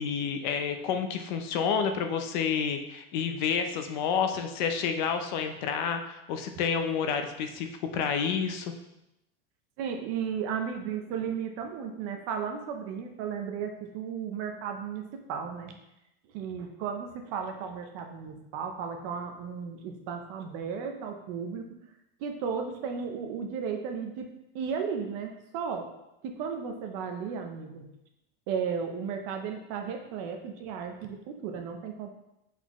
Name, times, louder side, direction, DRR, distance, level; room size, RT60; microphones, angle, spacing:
voice 1, 0.0-7.7 7.9-8.7, left 6 dB, 50° left, 6 dB, 0.6 m, -29 dB
voice 2, 9.8-15.7 16.3-21.8 22.2-25.9 26.2-27.9 28.5-32.1, right 6 dB, 35° right, 4 dB, 0.5 m, -34 dB
7.9 x 4.2 x 3.0 m, 0.88 s
supercardioid pair, 180°, 30 cm